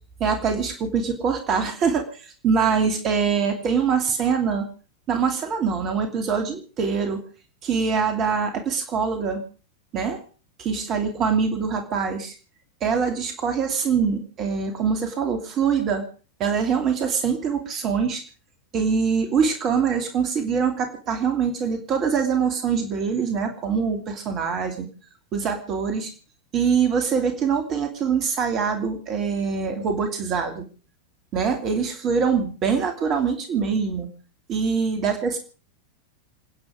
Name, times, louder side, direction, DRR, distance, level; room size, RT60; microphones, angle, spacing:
voice 1, 0.2-4.7 5.1-7.2 7.6-9.4 9.9-10.2 10.6-12.3 12.8-16.0 16.4-18.2 18.7-24.9 25.3-26.1 26.5-30.7 31.3-34.1 34.5-35.4, right 6 dB, 35° right, 5 dB, 2.8 m, -24 dB
27.5 x 9.6 x 5.0 m, 0.38 s
figure-of-eight pair, 90°, 0 cm